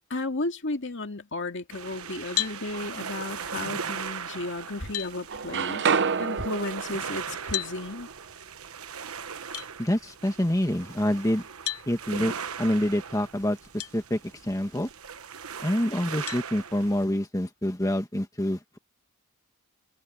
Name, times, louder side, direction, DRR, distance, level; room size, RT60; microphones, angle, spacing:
voice 1, 0.1-8.1, left 2 dB, 55° left, 2.2 m, -34 dB
sound 1, 1.7-17.1, right 6 dB, 75° right, 1.2 m, -39 dB
sound 2, 2.4-2.6 4.3-4.4 4.9-5.1 7.5-7.8 9.5-9.7 11.7-11.9 13.8-13.9 14.6-14.7 16.3-16.5, left 14 dB, 85° left, 0.9 m, -31 dB
sound 3, 2.4-3.3 3.8-4.9 5.1-9.1, right 6 dB, 55° right, 0.7 m, -31 dB
voice 2, 9.8-11.4 11.9-12.3 12.6-14.9 15.6-18.8, left 1 dB, 15° left, 1.5 m, -27 dB
head